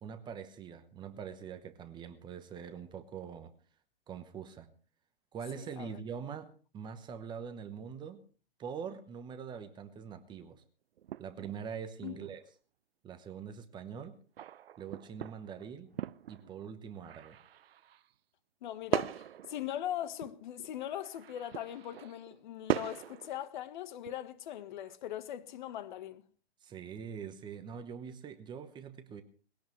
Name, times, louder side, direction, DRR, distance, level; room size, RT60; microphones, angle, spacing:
voice 1, 0.0-3.5 4.1-4.7 5.3-6.5 6.7-8.2 8.6-10.6 11.2-12.4 13.0-14.2 14.8-15.9 16.3-17.4 26.6-29.2, right 7 dB, 15° right, 1.0 m, -43 dB
voice 2, 5.5-6.0 12.0-12.2 18.6-26.2, left 11 dB, 50° left, 1.4 m, -40 dB
sound 1, 11.0-11.6 12.0-12.5 14.4-16.7 17.0-18.1 18.9-20.7 21.0-22.4 22.7-23.5 24.0-24.2 24.6-25.0, right 11 dB, 70° right, 0.7 m, -39 dB
20.5 x 17.0 x 3.2 m
hypercardioid pair, 140°, 31 cm